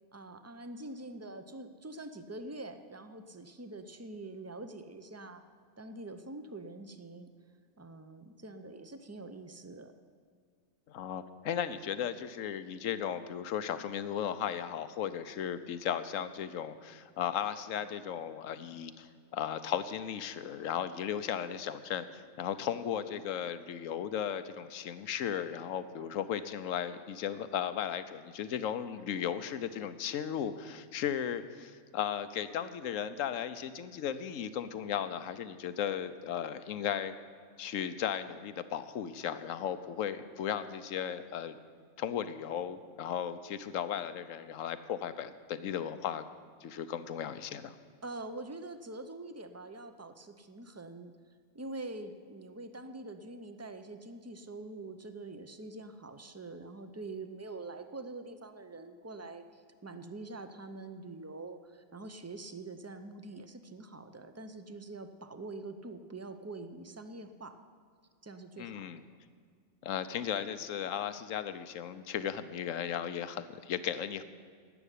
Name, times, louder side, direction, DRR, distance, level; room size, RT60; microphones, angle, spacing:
voice 1, 0.1-5.4 5.8-7.3 7.8-9.9 48.0-51.1 51.5-67.6 68.2-68.9, right 2 dB, 20° right, 9 dB, 0.4 m, -45 dB
voice 2, 10.9-37.2 37.6-41.6 42.0-46.3 46.6-47.7 68.6-69.0 69.8-74.2, left 9 dB, 85° left, 12 dB, 1.1 m, -36 dB
12.0 x 8.0 x 10.0 m, 2.1 s
omnidirectional pair, 1.3 m